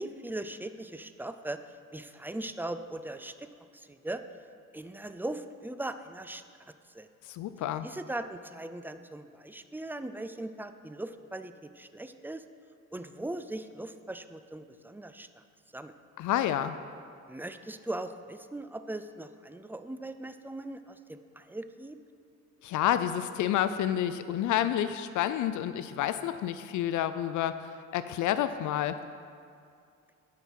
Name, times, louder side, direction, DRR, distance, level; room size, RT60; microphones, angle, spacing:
voice 1, 0.0-1.6 1.9-3.5 3.7-4.2 4.7-6.4 6.9-7.1 7.8-12.4 12.9-15.3 15.7-15.9 17.3-22.0, right 1 dB, 5° right, 10 dB, 0.4 m, -39 dB
voice 2, 7.2-7.9 16.2-16.8 22.6-29.0, left 11 dB, 75° left, 12 dB, 0.5 m, -29 dB
10.5 x 5.7 x 6.3 m, 2.4 s
cardioid pair, 90°, 30 cm